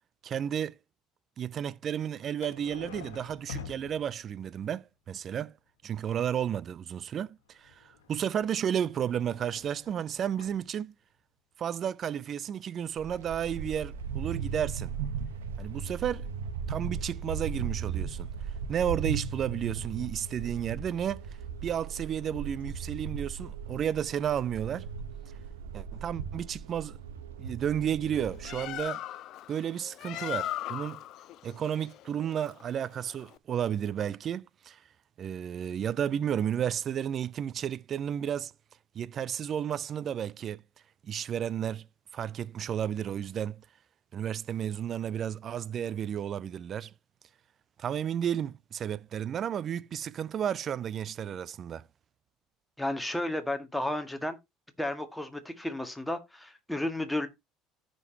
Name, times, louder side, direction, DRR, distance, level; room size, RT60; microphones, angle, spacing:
voice 1, 0.2-0.8 1.4-5.5 5.8-10.9 11.6-14.9 15.6-16.3 16.7-18.3 18.7-21.2 21.6-24.9 25.7-27.0 27.4-29.0 29.5-31.0 31.4-34.8 35.2-38.5 38.9-40.6 41.0-41.9 42.1-43.6 44.1-46.9 47.8-51.8, right 9 dB, 45° right, 0.5 m, -32 dB
sound 1, 2.4-4.5 7.4-10.6 12.5-12.6 12.8-12.9, left 6 dB, 80° left, 1.6 m, -47 dB
sound 2, 13.0-28.8, right 6 dB, 80° right, 1.2 m, -37 dB
Bird, 28.2-33.4, left 13 dB, 55° left, 0.5 m, -39 dB
voice 2, 52.8-54.4 54.8-57.3, left 1 dB, 5° left, 1.9 m, -32 dB
14.5 x 5.2 x 2.9 m
hypercardioid pair, 65°, 0 cm